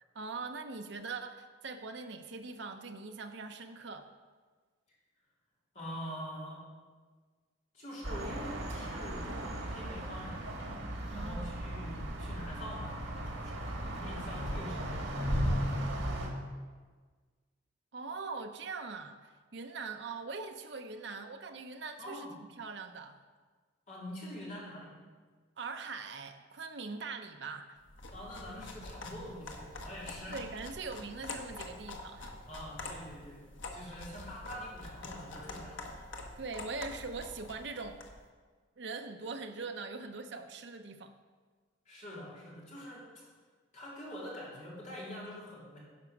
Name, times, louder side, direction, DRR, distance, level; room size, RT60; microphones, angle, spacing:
voice 1, 0.1-4.1 11.1-11.5 17.9-22.3 22.6-23.2 25.6-27.8 30.3-32.3 36.4-38.0 38.8-41.2, right 4 dB, 65° right, 6 dB, 0.7 m, -42 dB
voice 2, 5.7-6.6 7.7-10.6 11.1-16.3 22.0-22.3 23.9-24.9 28.1-30.4 32.5-33.4 33.7-36.3 41.8-43.3 43.7-45.8, equal, 40° left, -6 dB, 3.2 m, -45 dB
sound 1, 8.0-16.3, equal, 85° right, 1.7 m, -36 dB
sound 2, 27.9-38.2, left 2 dB, 85° left, 1.2 m, -46 dB
10.5 x 5.2 x 6.0 m, 1.5 s
head